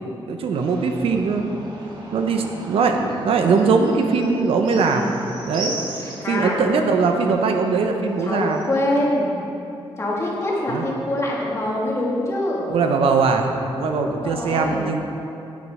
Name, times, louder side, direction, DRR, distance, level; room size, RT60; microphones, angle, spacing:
voice 1, 0.3-1.5 2.1-5.1 5.5-5.8 6.3-8.6 10.7-10.8 12.7-13.5 13.8-15.0, right 4 dB, 85° right, 4 dB, 0.8 m, -20 dB
sound 1, 0.5-8.7, right 2 dB, 55° right, 1.9 m, -38 dB
voice 2, 4.7-5.1 6.0-6.6 8.2-9.4 10.0-12.7 14.0-14.9, left 1 dB, 30° left, -4 dB, 1.9 m, -24 dB
9.4 x 8.5 x 4.9 m, 2.8 s
wide cardioid pair, 145°, 9 cm